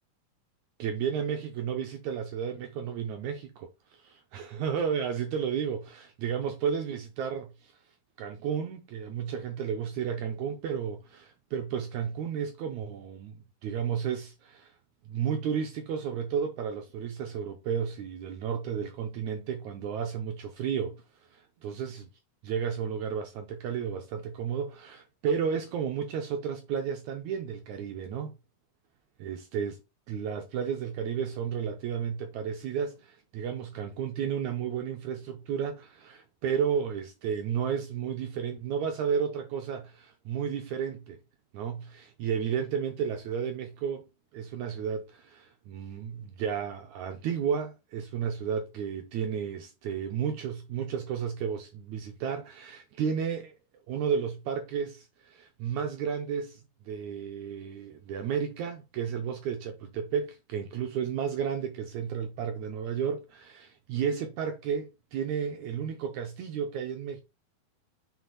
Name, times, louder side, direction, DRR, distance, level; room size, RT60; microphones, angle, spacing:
voice 1, 0.8-7.8 8.2-14.7 15.1-22.1 22.4-28.3 29.2-29.8 30.1-41.2 41.5-44.0 44.3-53.6 53.9-67.2, right 7 dB, 80° right, 1.7 m, -32 dB
6.4 x 4.1 x 4.0 m
omnidirectional pair, 4.2 m